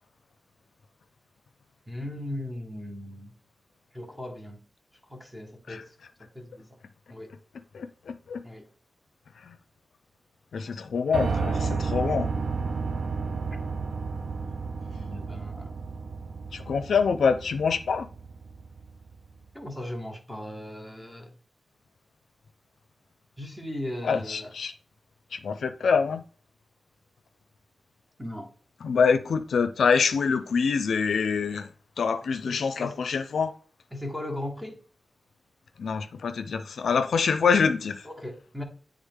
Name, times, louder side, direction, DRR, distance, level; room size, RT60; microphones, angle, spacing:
voice 1, 1.9-3.3 3.9-4.6 5.1-6.8 7.1-7.3 8.4-8.7 15.0-15.7 19.5-21.4 23.4-24.5 28.2-28.5 32.5-33.0 33.9-34.8 38.0-38.6, left 1 dB, 5° right, 1.5 m, -38 dB
voice 2, 7.7-8.4 9.4-9.5 10.5-12.3 16.5-18.1 24.0-24.7 25.3-26.2 28.8-31.7 32.0-33.5 35.8-38.1, left 5 dB, 85° left, 0.4 m, -25 dB
Piano, 11.1-19.1, right 4 dB, 75° right, 0.5 m, -32 dB
8.1 x 3.5 x 3.6 m
cardioid pair, 60°, 0 cm